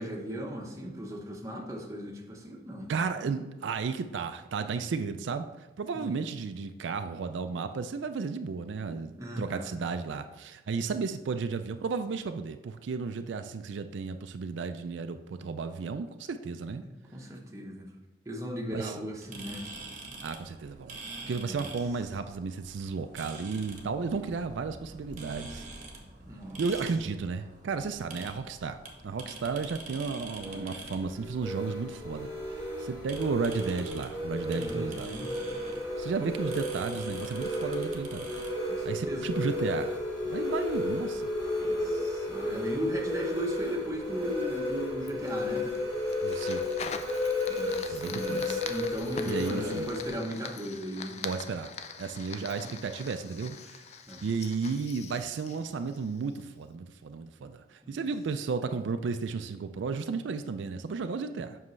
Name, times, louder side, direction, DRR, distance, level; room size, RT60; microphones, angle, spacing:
voice 1, 0.0-2.9 5.9-6.3 9.1-9.7 16.8-17.9 18.2-19.6 21.4-21.7 26.2-26.6 34.5-35.3 36.2-36.3 38.7-39.3 41.6-45.7 47.5-51.2 52.6-52.7 54.1-54.2 57.8-58.0, equal, 15° right, -1 dB, 0.9 m, -37 dB
voice 2, 2.9-16.8 18.7-18.9 20.2-21.0 21.3-25.7 26.6-28.8 29.0-35.1 36.0-38.3 38.8-40.0 40.2-41.3 46.2-46.8 47.9-48.6 49.2-49.9 51.2-51.7 52.0-53.8 54.2-61.6, right 5 dB, 80° right, 8 dB, 0.4 m, -33 dB
sound 1, 19.2-38.5, right 2 dB, 40° right, 1.0 m, -46 dB
sound 2, 30.4-50.1, left 1 dB, 20° left, 2.3 m, -33 dB
Fire, 45.1-56.4, left 6 dB, 35° left, 0.3 m, -43 dB
7.4 x 5.7 x 3.2 m, 1.1 s
head